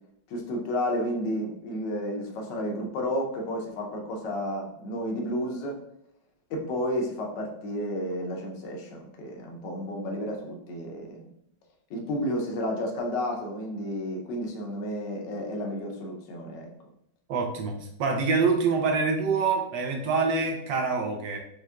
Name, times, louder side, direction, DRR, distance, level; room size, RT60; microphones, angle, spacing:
voice 1, 0.3-5.8 6.5-11.3 11.9-16.7, equal, 80° left, 1 dB, 1.4 m, -31 dB
voice 2, 17.3-17.7 18.0-21.4, right 4 dB, 80° right, 2 dB, 1.5 m, -25 dB
5.3 x 3.2 x 2.3 m, 0.76 s
omnidirectional pair, 2.0 m